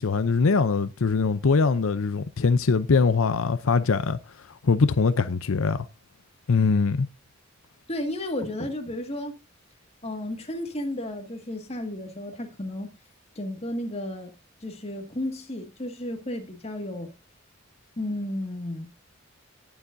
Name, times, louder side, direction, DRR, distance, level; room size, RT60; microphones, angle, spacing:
voice 1, 0.0-4.2 4.5-5.9 6.5-7.1, left 4 dB, 75° left, 0.6 m, -22 dB
voice 2, 7.9-9.4 10.0-13.0 13.4-14.3 14.6-17.1 18.0-18.9, left 1 dB, 30° left, 2.0 m, -33 dB
18.5 x 7.0 x 2.7 m
head